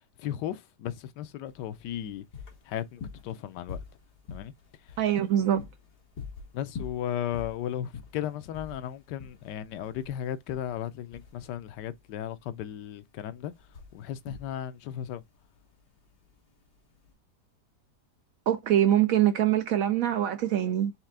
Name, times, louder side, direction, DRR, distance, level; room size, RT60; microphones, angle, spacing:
voice 1, 0.2-2.2 2.6-3.8 4.3-4.5 4.8-5.0 6.5-13.5 13.9-15.2, left 10 dB, 90° left, 1.2 m, -35 dB
sound 1, 1.5-17.1, left 5 dB, 75° left, 2.1 m, -46 dB
voice 2, 5.0-5.6 18.5-20.9, right 11 dB, 70° right, 0.8 m, -24 dB
4.4 x 3.3 x 3.6 m
omnidirectional pair, 1.8 m